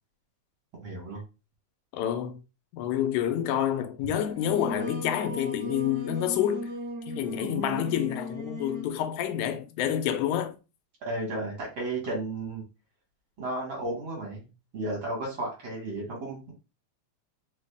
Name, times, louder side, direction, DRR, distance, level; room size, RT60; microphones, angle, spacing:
voice 1, 0.8-1.2 11.0-12.6 13.4-14.5 14.7-16.5, right 2 dB, 50° right, 2.2 m, -33 dB
voice 2, 1.9-2.4 2.7-6.7 7.1-10.6, left 10 dB, 85° left, 2.0 m, -28 dB
Singing, 4.1-9.0, left 1 dB, 75° right, 1.1 m, -37 dB
4.8 x 2.7 x 3.4 m
omnidirectional pair, 3.3 m